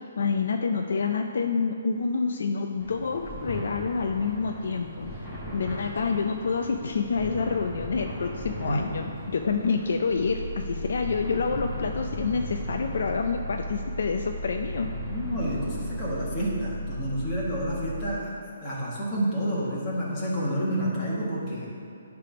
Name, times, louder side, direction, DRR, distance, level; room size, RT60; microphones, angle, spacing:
voice 1, 0.2-5.1 5.5-14.9, left 5 dB, 65° left, 4 dB, 0.4 m, -28 dB
sound 1, 2.8-16.2, equal, ahead, 1.2 m, -39 dB
sound 2, 10.1-18.1, right 1 dB, 30° right, 0.7 m, -35 dB
voice 2, 15.1-18.3 18.6-21.7, equal, 20° left, -7 dB, 1.7 m, -29 dB
9.8 x 3.5 x 5.9 m, 2.7 s
hypercardioid pair, 170°, 0 cm